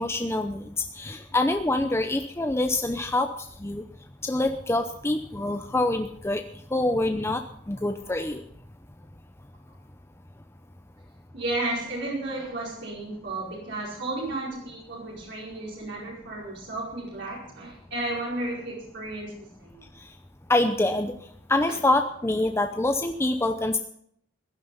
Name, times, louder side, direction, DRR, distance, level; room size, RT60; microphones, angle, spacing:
voice 1, 0.0-3.3 3.6-3.8 4.2-6.4 6.7-7.4 7.7-8.4 20.5-21.1 21.5-23.8, left 2 dB, 15° left, 7 dB, 0.7 m, -25 dB
voice 2, 11.3-19.9, right 2 dB, 65° right, -5 dB, 4.9 m, -33 dB
16.0 x 11.5 x 5.6 m, 0.70 s
head